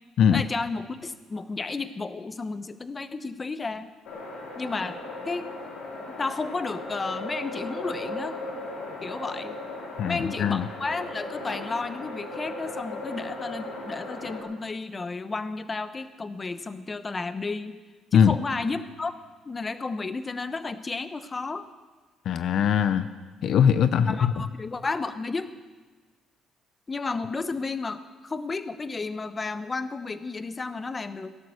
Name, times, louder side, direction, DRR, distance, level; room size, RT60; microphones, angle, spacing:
voice 1, 0.3-3.9 4.6-5.0 5.2-5.5 6.1-8.4 9.0-9.6 10.1-17.8 18.1-19.2 19.5-21.7 24.0-25.5 26.9-31.3, left 3 dB, 25° left, 11 dB, 0.9 m, -32 dB
sound 1, 4.1-14.4, left 2 dB, 80° left, 4.0 m, -37 dB
voice 2, 10.0-10.6 18.1-18.3 22.3-23.1 23.4-24.3, left 8 dB, 60° left, 12 dB, 0.6 m, -21 dB
17.5 x 11.5 x 6.5 m, 1.3 s
cardioid pair, 110°, 0 cm